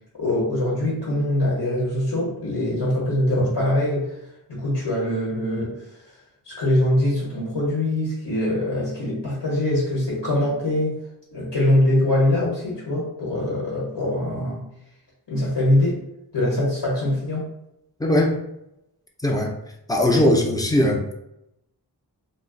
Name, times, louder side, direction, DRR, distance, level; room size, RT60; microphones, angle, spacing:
voice 1, 0.2-4.2 4.5-5.9 6.5-10.9 11.3-14.6 15.3-16.0 16.3-17.5, left 1 dB, 75° left, -6 dB, 1.1 m, -23 dB
voice 2, 18.0-18.4 19.2-19.5 19.9-21.1, left 1 dB, 10° left, 1 dB, 0.5 m, -19 dB
2.4 x 2.0 x 3.7 m, 0.83 s
wide cardioid pair, 50°, 41 cm